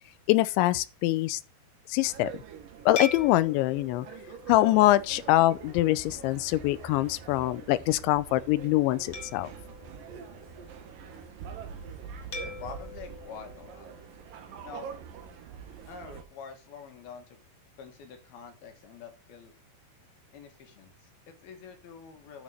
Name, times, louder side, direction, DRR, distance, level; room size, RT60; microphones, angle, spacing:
voice 1, 0.3-1.4 1.9-2.3 2.9-4.1 4.5-9.5, left 16 dB, 85° left, 3.0 m, -24 dB
sound 1, 2.0-16.2, right 7 dB, 65° right, 2.5 m, -45 dB
sound 2, 3.0-5.6 6.2-6.4 9.1-10.9 12.3-14.6, left 3 dB, 45° left, 2.9 m, -42 dB
sound 3, 4.7-13.1, equal, 15° left, 2.0 m, -54 dB
voice 2, 12.6-13.9 14.6-14.9 15.9-17.4 17.8-19.5 20.3-22.4, left 6 dB, 65° left, 3.4 m, -46 dB
11.5 x 6.2 x 5.1 m
omnidirectional pair, 5.2 m